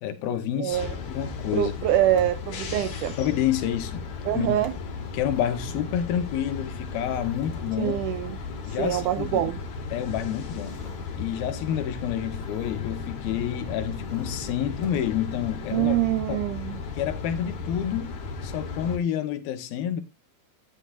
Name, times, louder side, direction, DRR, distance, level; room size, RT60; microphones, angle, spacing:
voice 1, 0.0-1.7 3.2-4.0 4.3-4.6 5.1-8.0 8.7-9.5 9.9-10.8 11.2-15.9 16.3-16.4 17.0-20.0, left 10 dB, 85° left, 3.1 m, -29 dB
voice 2, 0.6-1.0 1.5-3.2 4.3-4.7 7.8-8.4 8.8-9.6 15.7-16.8, right 13 dB, 80° right, 1.8 m, -25 dB
sound 1, 0.7-19.0, left 4 dB, 55° left, 3.2 m, -35 dB
sound 2, 2.2-2.8 4.6-5.9 7.4-8.8 9.2-9.5 10.8-12.3 14.8-16.5, left 3 dB, 30° left, 2.4 m, -48 dB
sound 3, 5.3-5.9 7.0-7.7 8.8-9.5 10.6-11.3 12.3-12.9 14.0-14.6 15.7-16.4, right 1 dB, ahead, 6.6 m, -53 dB
12.0 x 10.0 x 2.6 m
omnidirectional pair, 4.2 m